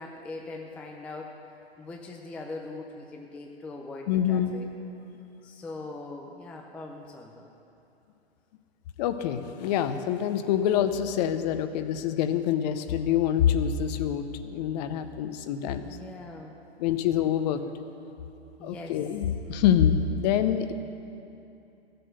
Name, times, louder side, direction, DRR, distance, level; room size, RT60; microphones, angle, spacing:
voice 1, 0.0-1.3 1.8-4.7 5.4-7.5 15.8-16.6 18.6-19.0, left 2 dB, 5° left, 1 dB, 0.3 m, -41 dB
voice 2, 4.1-4.6 9.0-15.8 16.8-17.6 18.6-20.7, left 9 dB, 40° left, 10 dB, 0.7 m, -26 dB
14.5 x 7.9 x 6.6 m, 2.8 s
hypercardioid pair, 115°, 33 cm